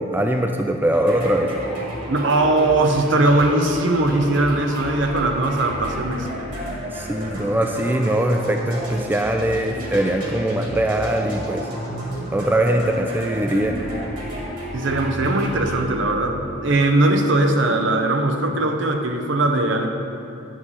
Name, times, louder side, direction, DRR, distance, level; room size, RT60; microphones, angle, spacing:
voice 1, 0.0-1.5 6.9-11.7 12.3-13.8, right 1 dB, 10° right, 3 dB, 0.3 m, -21 dB
sound 1, 0.9-16.8, equal, 45° right, 2.0 m, -32 dB
voice 2, 2.1-6.4 14.7-19.9, right 2 dB, 70° right, 4 dB, 0.8 m, -20 dB
9.6 x 4.2 x 7.2 m, 2.7 s
head